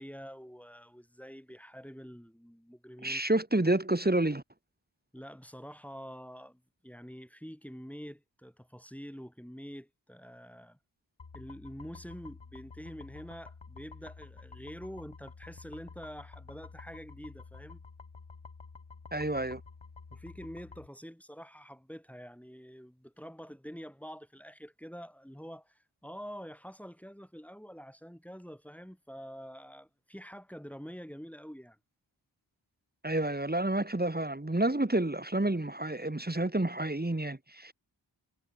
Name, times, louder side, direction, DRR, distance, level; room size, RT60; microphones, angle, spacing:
voice 1, 0.0-3.3 5.1-10.8 11.3-17.8 20.1-31.8, equal, 5° left, 5.9 m, -46 dB
voice 2, 3.0-4.4 19.1-19.6 33.0-37.7, right 1 dB, 20° right, 1.9 m, -29 dB
sound 1, 11.2-20.9, left 4 dB, 85° left, 3.0 m, -50 dB
wide cardioid pair, 60°, 45 cm